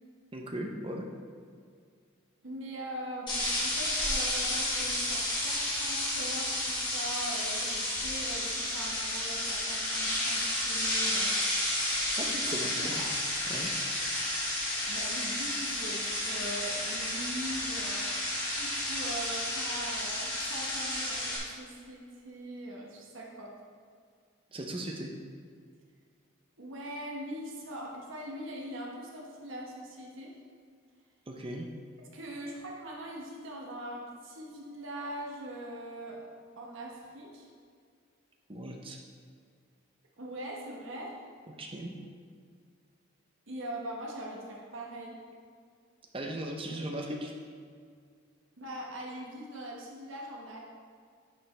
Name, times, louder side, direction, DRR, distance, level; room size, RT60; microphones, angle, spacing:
voice 1, 0.3-1.1 12.2-13.0 13.5-13.7 24.5-25.1 31.3-31.7 38.5-39.0 41.6-41.9 46.1-47.3, right 1 dB, 25° right, 1 dB, 0.8 m, -37 dB
voice 2, 2.4-11.3 12.3-12.5 12.8-13.1 14.9-18.1 18.4-23.5 26.6-30.3 32.0-36.2 36.6-37.5 40.2-41.2 43.5-45.2 48.6-50.6, right 1 dB, 70° right, -2 dB, 1.3 m, -41 dB
sound 1, 3.3-21.4, left 1 dB, 20° left, 1.6 m, -31 dB
9.7 x 5.3 x 3.4 m, 2.1 s
head